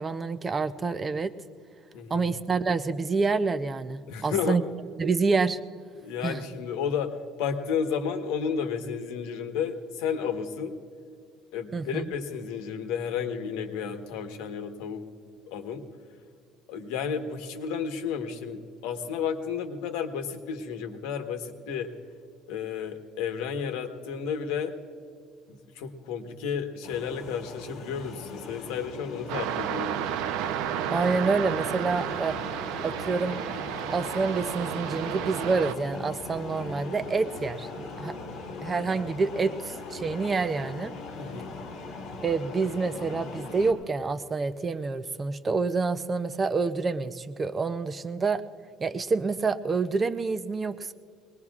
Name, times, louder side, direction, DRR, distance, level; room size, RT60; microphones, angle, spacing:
voice 1, 0.0-1.3 2.1-4.6 5.0-5.6 6.2-6.4 11.7-12.1 30.9-32.4 32.8-33.4 33.9-38.2 38.6-40.9 42.2-48.4 48.8-50.9, right 4 dB, 20° right, 11 dB, 0.5 m, -27 dB
voice 2, 1.9-2.3 4.1-4.6 6.0-10.8 11.5-15.0 15.5-15.9 16.7-21.9 22.5-24.7 25.5-30.0 41.2-41.6, left 7 dB, 85° left, 7 dB, 1.2 m, -32 dB
sound 1, 26.8-43.7, left 3 dB, 45° left, 3.8 m, -40 dB
sound 2, 29.3-35.7, right 10 dB, 80° right, 0.6 m, -32 dB
23.0 x 20.0 x 2.4 m, 2.3 s
cardioid pair, 135°, 0 cm